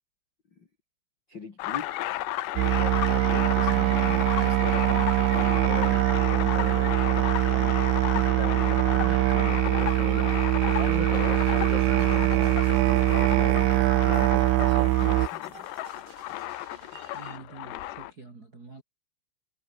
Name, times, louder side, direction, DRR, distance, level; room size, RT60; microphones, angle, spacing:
voice 1, 1.3-1.9 2.6-6.0 6.3-7.7 8.1-10.3 10.7-13.7 14.0-15.7, left 4 dB, 40° left, 1.6 m, -39 dB
sound 1, 1.6-18.1, left 15 dB, 70° left, 2.8 m, -33 dB
Musical instrument, 2.6-15.3, right 20 dB, 85° right, 2.7 m, -23 dB
sound 2, 3.6-17.4, right 6 dB, 60° right, 7.2 m, -51 dB
voice 2, 17.1-18.8, right 3 dB, 30° right, 2.0 m, -46 dB
omnidirectional pair, 5.9 m